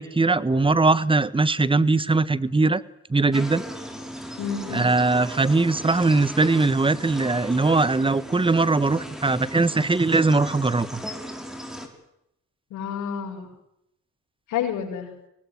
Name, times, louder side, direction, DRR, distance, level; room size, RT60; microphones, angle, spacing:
voice 1, 0.0-2.8 3.1-3.6 4.7-11.0, right 3 dB, 15° right, 17 dB, 1.6 m, -21 dB
sound 1, 3.3-11.9, equal, ahead, 6.2 m, -37 dB
voice 2, 4.4-4.9 12.7-13.5 14.5-15.1, left 8 dB, 85° left, -4 dB, 6.8 m, -29 dB
24.5 x 20.0 x 9.4 m, 0.81 s
cardioid pair, 90°, 30 cm